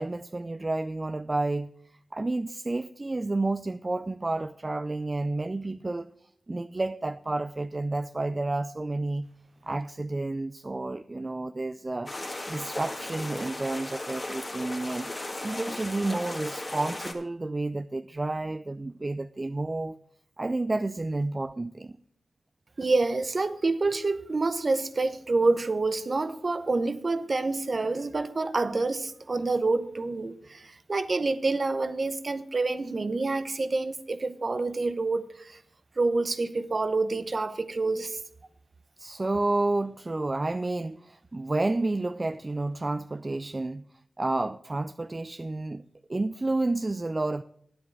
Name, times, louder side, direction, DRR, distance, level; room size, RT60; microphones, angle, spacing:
voice 1, 0.0-1.7 2.1-9.3 9.6-12.1 12.5-15.1 15.4-20.0 20.4-21.9 39.0-43.8 44.2-45.8 46.1-47.4, right 2 dB, 35° right, 0.4 m, -30 dB
sound 1, 12.1-17.1, left 2 dB, 35° left, 1.8 m, -36 dB
voice 2, 22.8-35.6 36.0-38.2, right 3 dB, 50° right, 0.8 m, -27 dB
9.3 x 7.9 x 6.1 m
cardioid pair, 45°, 0 cm